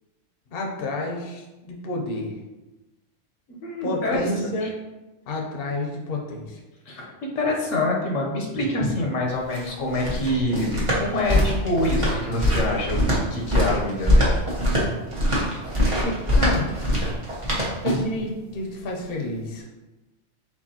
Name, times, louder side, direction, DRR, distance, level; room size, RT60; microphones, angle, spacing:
voice 1, 0.5-2.3 3.8-4.7 5.3-6.6 16.0-17.1 17.8-19.7, left 2 dB, 50° left, 0 dB, 0.9 m, -30 dB
voice 2, 3.6-4.2 4.6-4.7 6.9-14.4, left 1 dB, 80° left, -1 dB, 1.2 m, -26 dB
sound 1, 9.3-18.2, equal, 25° right, 1.1 m, -22 dB
4.7 x 3.9 x 2.9 m, 1.1 s
omnidirectional pair, 1.3 m